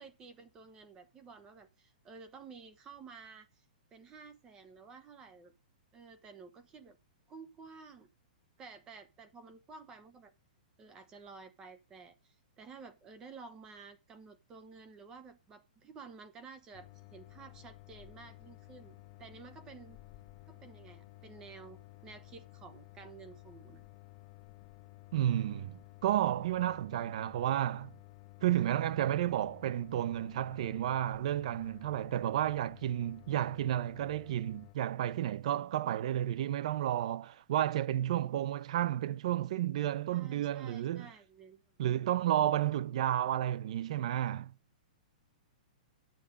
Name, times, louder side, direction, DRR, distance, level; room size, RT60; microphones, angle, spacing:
voice 1, 0.0-3.6 3.9-5.5 5.9-7.0 7.3-8.1 8.6-10.3 10.8-20.0 20.5-23.8 40.1-41.6, right 5 dB, 15° right, 1.0 m, -52 dB
sound 1, 16.7-34.7, left 19 dB, 30° left, 0.7 m, -54 dB
voice 2, 25.1-27.9 28.4-41.1 41.8-44.5, right 12 dB, 45° right, 0.6 m, -32 dB
11.0 x 7.6 x 5.1 m
hypercardioid pair, 170°, 5 cm